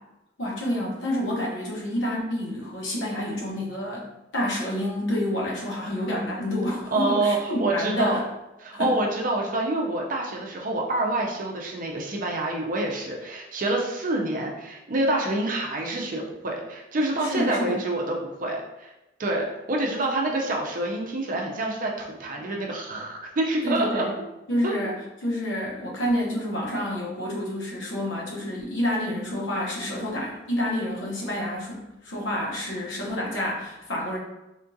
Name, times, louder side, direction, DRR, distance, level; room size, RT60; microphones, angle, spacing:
voice 1, 0.4-4.0 4.3-8.2 8.7-8.9 17.2-17.8 23.6-24.1 24.5-24.9 25.2-34.2, left 1 dB, 80° left, -3 dB, 1.0 m, -28 dB
voice 2, 6.9-8.2 8.6-18.9 19.2-24.1 24.6-24.7, right 2 dB, 45° right, 0 dB, 0.5 m, -27 dB
3.6 x 2.4 x 2.6 m, 0.98 s
head